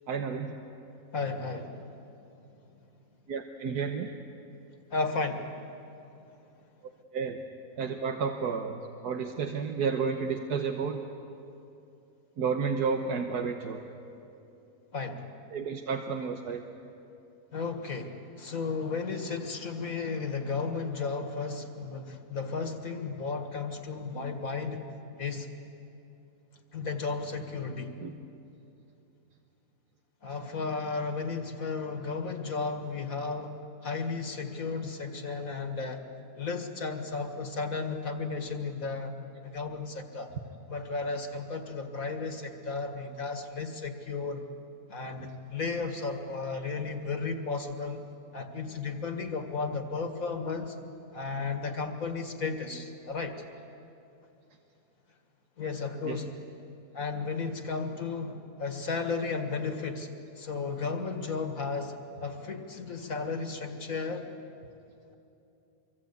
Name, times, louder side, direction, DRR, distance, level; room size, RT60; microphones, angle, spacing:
voice 1, 0.1-0.6 3.3-4.1 7.1-7.4 7.8-11.0 12.4-13.8 15.5-16.6 28.0-28.1 46.5-46.6 56.0-56.2, right 5 dB, 85° right, 4 dB, 1.7 m, -31 dB
voice 2, 1.1-1.9 4.9-5.5 14.9-15.3 17.5-24.9 25.2-25.5 26.7-27.9 30.2-36.0 36.4-39.1 39.4-40.3 40.7-44.4 44.9-48.1 48.3-50.8 51.1-53.4 55.6-56.3 56.9-60.1 60.4-64.3, left 4 dB, 60° left, 5 dB, 2.1 m, -34 dB
25.0 x 24.0 x 8.3 m, 2.8 s
omnidirectional pair, 1.6 m